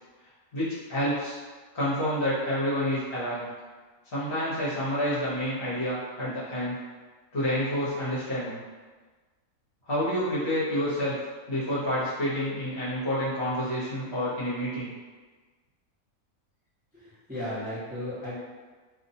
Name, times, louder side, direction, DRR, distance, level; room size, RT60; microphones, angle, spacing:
voice 1, 0.5-1.4 1.7-3.5 4.1-6.8 7.3-8.6 9.9-11.1 11.5-14.9, equal, 50° left, -11 dB, 1.1 m, -28 dB
voice 2, 16.9-18.4, left 1 dB, 10° right, -13 dB, 0.8 m, -35 dB
2.7 x 2.2 x 2.6 m, 1.4 s
omnidirectional pair, 1.5 m